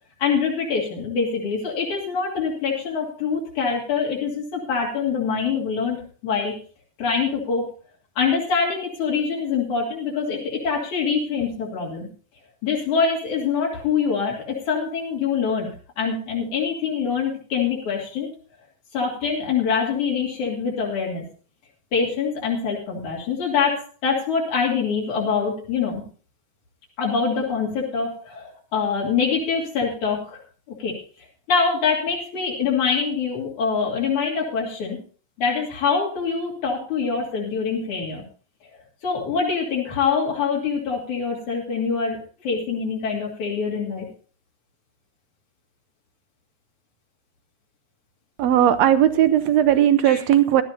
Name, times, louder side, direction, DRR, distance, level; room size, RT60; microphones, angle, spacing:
voice 1, 0.2-6.5 7.0-7.7 8.2-12.1 12.6-15.7 16.0-18.3 18.9-21.3 21.9-26.0 27.0-30.4 30.8-30.9 31.5-35.0 35.4-38.2 39.0-44.1 50.1-50.2, left 5 dB, 85° left, -3 dB, 4.2 m, -24 dB
voice 2, 48.4-50.6, right 11 dB, 75° right, 12 dB, 1.9 m, -17 dB
18.0 x 12.0 x 2.7 m, 0.40 s
omnidirectional pair, 3.3 m